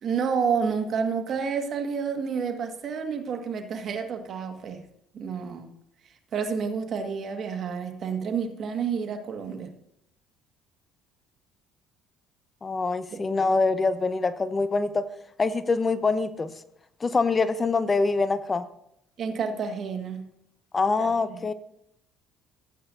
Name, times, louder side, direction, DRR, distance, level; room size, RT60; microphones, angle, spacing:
voice 1, 0.0-4.8 5.1-5.7 6.3-9.7 13.1-13.2 19.2-20.3 21.0-21.5, right 6 dB, 55° right, 6 dB, 1.8 m, -30 dB
voice 2, 12.6-15.0 15.4-16.5 17.0-18.7 20.7-21.5, left 4 dB, 30° left, 13 dB, 0.9 m, -24 dB
15.5 x 8.8 x 2.7 m, 0.76 s
hypercardioid pair, 65°, 0 cm